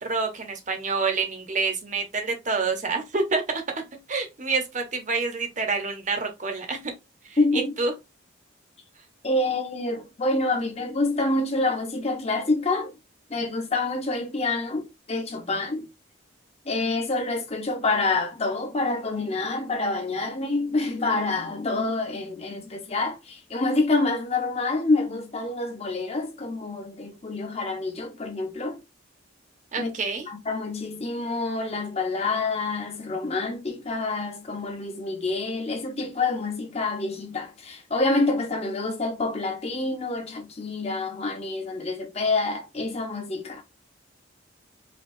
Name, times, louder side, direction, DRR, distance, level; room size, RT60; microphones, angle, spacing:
voice 1, 0.0-3.6 4.1-6.9 7.2-7.4 7.8-7.9 29.7-30.3, right 4 dB, 40° right, 0.9 m, -27 dB
voice 2, 7.4-7.7 9.2-12.9 13.3-15.9 16.6-28.8 29.8-29.9 30.3-43.6, left 2 dB, 30° left, 0.8 m, -27 dB
5.1 x 2.3 x 2.6 m
head